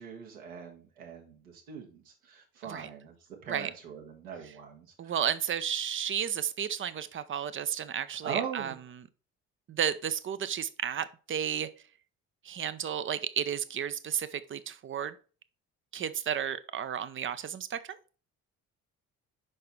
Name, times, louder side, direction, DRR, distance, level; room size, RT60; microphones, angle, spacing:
voice 1, 0.0-3.1 3.4-5.1 8.2-8.7, right 7 dB, 75° right, 1.7 m, -40 dB
voice 2, 5.0-9.1 9.7-11.7 12.4-15.1 15.9-18.0, right 9 dB, 30° right, 0.6 m, -33 dB
5.7 x 5.4 x 4.3 m
figure-of-eight pair, 45°, 43 cm